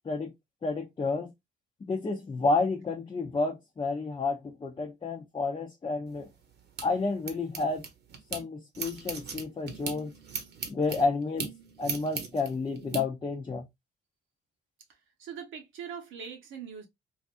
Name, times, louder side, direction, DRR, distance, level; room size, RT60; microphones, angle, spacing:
voice 1, 0.6-1.3 1.9-6.3 6.8-7.8 8.3-10.1 10.7-11.5 11.8-13.6, left 3 dB, 25° left, 0.5 m, -30 dB
sound 1, 6.1-8.4 8.7-13.0, right 5 dB, 55° right, 0.9 m, -39 dB
voice 2, 15.2-16.9, right 7 dB, 85° right, 1.0 m, -41 dB
3.3 x 2.5 x 2.4 m
cardioid pair, 90°, 20 cm